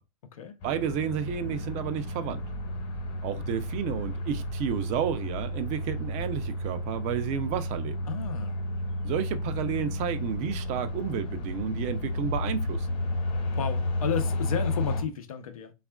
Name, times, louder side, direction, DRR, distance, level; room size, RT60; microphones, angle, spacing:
sound 1, 0.6-15.0, left 1 dB, 40° left, 1.1 m, -32 dB
voice 1, 0.6-2.4 3.2-8.0 9.0-12.9, right 8 dB, 40° right, 0.5 m, -31 dB
voice 2, 8.1-8.6 13.5-15.7, left 8 dB, 80° left, 0.7 m, -32 dB
3.4 x 2.4 x 2.2 m
hypercardioid pair, 110°, 18 cm